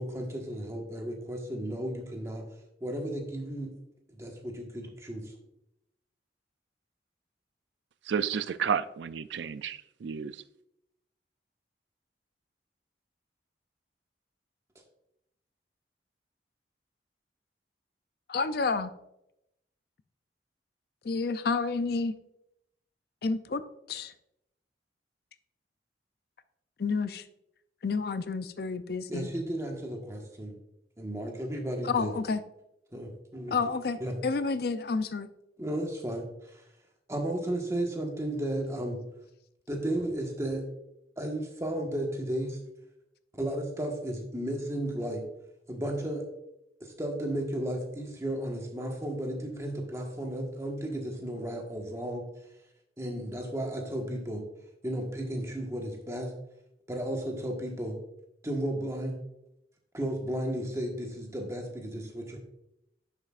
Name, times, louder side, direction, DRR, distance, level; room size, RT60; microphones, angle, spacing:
voice 1, 0.0-2.4 2.8-3.7 4.1-5.3 29.1-30.6 31.0-32.2 32.9-33.5 34.0-34.2 35.6-36.6 37.1-39.0 39.7-40.7 41.2-42.6 43.3-45.2 45.7-46.2 46.8-52.2 53.0-54.5 54.8-56.3 56.9-58.0 58.4-59.2 59.9-62.4, right 1 dB, 15° right, 1.4 m, -34 dB
voice 2, 8.1-10.3, right 7 dB, 80° right, 0.4 m, -31 dB
voice 3, 18.3-18.9 21.0-22.1 23.2-23.6 23.9-24.1 26.8-27.3 27.8-29.3 31.8-32.4 33.5-34.0 34.2-35.3, left 4 dB, 60° left, 0.5 m, -29 dB
10.5 x 7.3 x 2.5 m
head